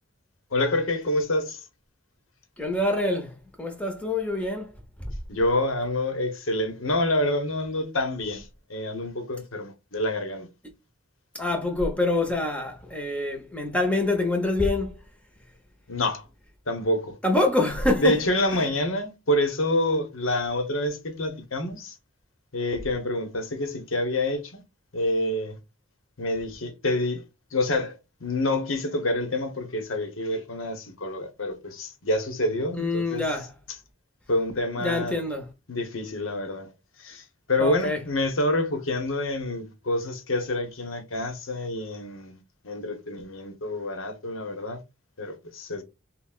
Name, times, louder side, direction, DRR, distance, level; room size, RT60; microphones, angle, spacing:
voice 1, 0.5-1.6 5.3-10.5 15.9-16.2 16.7-17.2 18.0-22.0 22.5-24.6 24.9-25.6 26.2-27.2 27.5-33.2 34.3-35.1 35.7-36.7 37.0-37.2 37.5-44.8 45.2-45.8, left 1 dB, 75° left, 1.0 m, -27 dB
voice 2, 2.6-4.7 5.0-5.1 11.3-15.0 17.2-18.2 18.5-18.7 32.7-33.5 34.8-35.5 37.6-38.0, left 2 dB, 5° left, 0.8 m, -26 dB
5.6 x 2.3 x 2.4 m
head